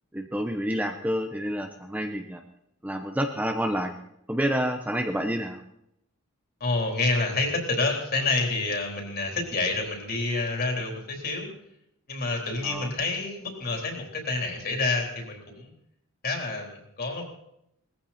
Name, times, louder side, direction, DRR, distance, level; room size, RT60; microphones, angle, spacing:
voice 1, 0.1-2.4 2.8-3.9 4.3-5.6 12.6-12.9, equal, 5° right, 5 dB, 1.0 m, -28 dB
voice 2, 6.6-11.5 12.1-15.7 16.2-17.3, left 3 dB, 45° left, 2 dB, 3.9 m, -28 dB
20.0 x 15.0 x 4.4 m, 0.78 s
head